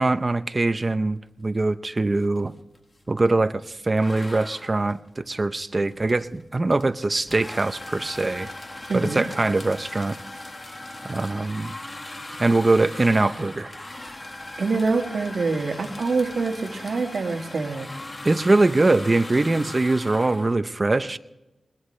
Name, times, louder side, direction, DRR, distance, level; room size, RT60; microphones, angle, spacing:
voice 1, 0.0-2.5 3.1-8.5 8.9-10.1 11.0-11.7 12.4-13.7 18.2-21.2, right 2 dB, 30° right, 11 dB, 0.7 m, -22 dB
sound 1, 1.6-1.9 2.1-3.4 4.0-20.6, left 1 dB, 30° left, 1.8 m, -39 dB
voice 2, 8.9-9.2 14.6-17.9, right 4 dB, 70° right, 4 dB, 1.9 m, -25 dB
21.5 x 20.5 x 3.3 m, 1.0 s
wide cardioid pair, 90°, 0 cm